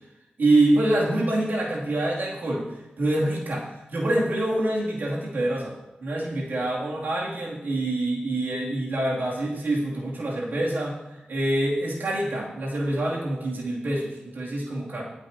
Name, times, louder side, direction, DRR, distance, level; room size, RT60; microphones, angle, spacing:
voice 1, 0.4-2.7 3.0-3.6 3.9-5.7 6.0-10.9 11.3-15.0, right 1 dB, 85° right, -4 dB, 2.5 m, -25 dB
20.5 x 8.0 x 2.8 m, 1.0 s
cardioid pair, 50°, 3 cm